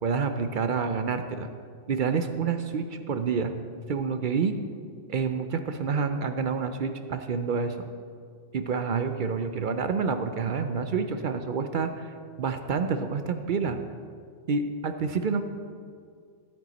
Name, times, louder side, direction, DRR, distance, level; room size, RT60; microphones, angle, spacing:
voice 1, 0.0-1.5 1.9-3.5 3.9-4.5 5.1-7.9 8.5-12.1 12.4-13.8 14.5-15.4, right 5 dB, 55° right, 8 dB, 0.6 m, -28 dB
13.0 x 9.3 x 4.1 m, 2.1 s
omnidirectional pair, 1.2 m